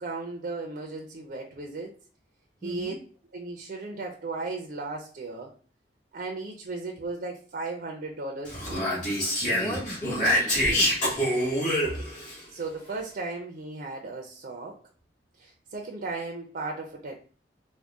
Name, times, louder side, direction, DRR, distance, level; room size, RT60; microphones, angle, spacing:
voice 1, 0.0-2.0 2.6-3.0 3.3-5.5 6.1-9.3 11.8-12.1 12.5-14.8 15.4-17.1, right 3 dB, 55° right, 1 dB, 0.5 m, -36 dB
voice 2, 2.6-3.0 9.5-11.2, equal, 15° left, 2 dB, 0.6 m, -37 dB
Speech, 8.4-12.3, equal, 45° left, 1.8 m, -26 dB
3.5 x 2.1 x 3.6 m, 0.39 s
head